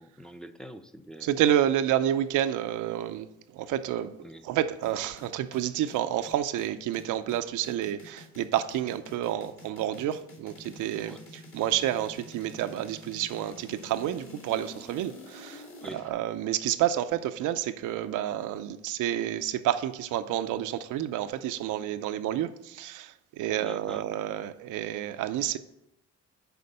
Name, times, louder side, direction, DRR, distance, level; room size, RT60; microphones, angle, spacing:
voice 1, 0.0-1.3 4.2-4.4 11.1-11.2 15.8-16.0 23.6-24.1, right 1 dB, ahead, 0.5 m, -44 dB
voice 2, 1.2-4.2 4.4-25.6, right 11 dB, 85° right, 0.5 m, -29 dB
sound 1, 4.8-16.1, left 2 dB, 45° left, 1.7 m, -48 dB
6.9 x 4.5 x 6.6 m
cardioid pair, 90°, 30 cm